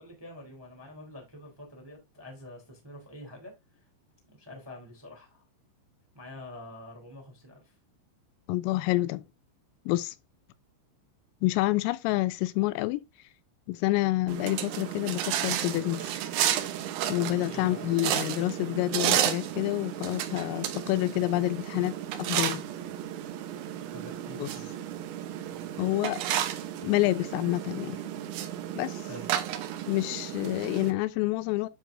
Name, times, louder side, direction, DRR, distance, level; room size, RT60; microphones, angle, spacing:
voice 1, 0.0-3.9 4.3-5.4 6.1-7.8 17.5-17.9 23.9-24.7 29.0-29.2, left 1 dB, 10° right, 1.8 m, -46 dB
voice 2, 8.5-9.2 9.9-10.2 11.4-13.0 13.7-16.1 17.1-21.9 22.2-22.6 24.4-24.5 25.8-26.2 26.8-28.0 28.8-29.0 29.9-31.7, left 18 dB, 85° left, 3.2 m, -28 dB
sound 1, 14.3-30.9, right 11 dB, 75° right, 3.1 m, -32 dB
10.0 x 6.1 x 2.6 m
omnidirectional pair, 5.9 m